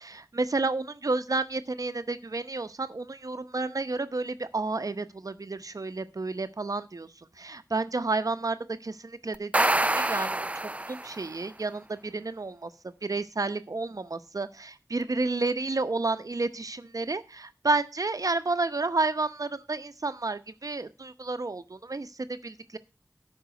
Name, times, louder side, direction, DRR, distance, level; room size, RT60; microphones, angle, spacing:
voice 1, 0.0-12.7 13.0-22.8, right 3 dB, 75° right, 10 dB, 0.8 m, -31 dB
sound 1, 9.3-11.3, right 1 dB, 20° right, 0.4 m, -26 dB
13.0 x 5.5 x 5.1 m, 0.29 s
wide cardioid pair, 45°, 6 cm